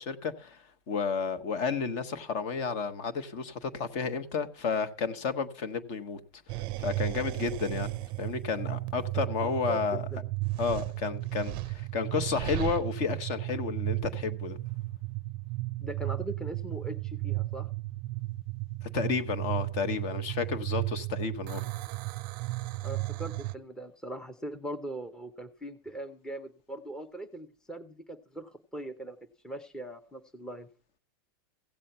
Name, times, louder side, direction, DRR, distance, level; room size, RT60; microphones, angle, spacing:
voice 1, 0.0-6.2 6.5-7.9 8.2-10.0 10.6-14.6 18.9-21.6, left 5 dB, 50° left, 1.4 m, -32 dB
sound 1, 6.5-23.5, right 20 dB, 40° right, 0.5 m, -34 dB
voice 2, 9.7-10.2 15.8-17.7 22.8-29.2 29.4-30.7, right 1 dB, 5° left, 0.7 m, -40 dB
16.0 x 7.6 x 5.5 m
supercardioid pair, 145°, 13 cm